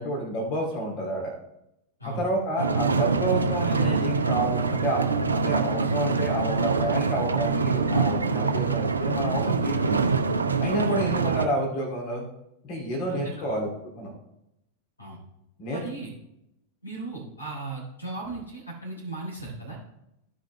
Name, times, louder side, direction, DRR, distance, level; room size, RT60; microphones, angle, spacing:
voice 1, 0.0-1.3 2.2-5.0 5.3-10.1 10.6-12.2 12.6-13.7 13.9-14.1 15.6-15.8, right 1 dB, 40° left, 0 dB, 2.3 m, -29 dB
sound 1, 2.6-11.5, right 4 dB, 75° right, 0.7 m, -25 dB
voice 2, 13.1-13.6 15.0-15.2 15.7-16.1 16.8-19.8, right 3 dB, 80° left, -2 dB, 3.2 m, -37 dB
15.0 x 5.1 x 3.1 m, 0.83 s
figure-of-eight pair, 90°, 0 cm